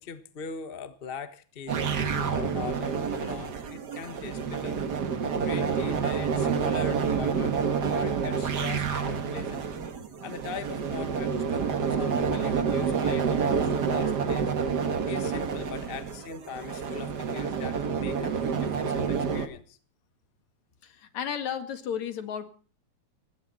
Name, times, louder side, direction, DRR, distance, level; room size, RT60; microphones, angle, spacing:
voice 1, 0.0-4.8 5.4-7.6 7.8-9.6 10.2-14.5 15.1-19.8, left 6 dB, 55° left, 11 dB, 0.6 m, -41 dB
sound 1, 1.7-19.5, right 6 dB, 45° right, 1.7 m, -28 dB
voice 2, 20.8-22.5, left 8 dB, 70° left, 9 dB, 3.1 m, -33 dB
20.0 x 16.5 x 4.2 m, 0.40 s
omnidirectional pair, 3.4 m